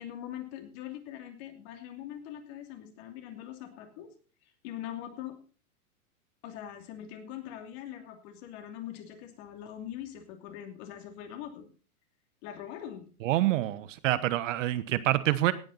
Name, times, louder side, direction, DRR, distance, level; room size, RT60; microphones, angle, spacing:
voice 1, 0.0-4.1 4.6-5.4 6.4-11.6 12.4-13.1, left 11 dB, 45° left, 5 dB, 2.9 m, -42 dB
voice 2, 13.2-15.5, right 15 dB, 55° right, 15 dB, 1.2 m, -27 dB
17.5 x 8.9 x 4.1 m, 0.38 s
hypercardioid pair, 140°, 44 cm